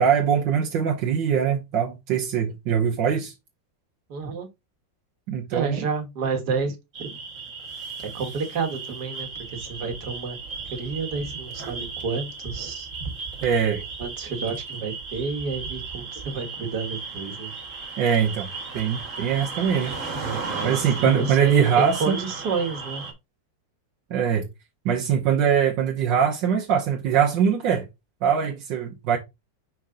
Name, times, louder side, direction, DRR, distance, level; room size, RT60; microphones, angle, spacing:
voice 1, 0.0-3.3 5.3-5.9 13.4-13.8 18.0-18.5 18.7-19.9 20.6-22.2 24.1-24.5 24.9-27.9 28.2-29.2, right 7 dB, 80° right, 1.6 m, -22 dB
voice 2, 4.1-4.5 5.5-7.2 8.1-10.4 10.7-12.9 14.0-17.5 20.2-23.1, right 4 dB, 60° right, 1.9 m, -30 dB
sound 1, 6.9-23.1, right 4 dB, 45° right, 1.8 m, -35 dB
5.7 x 4.6 x 3.7 m
omnidirectional pair, 2.0 m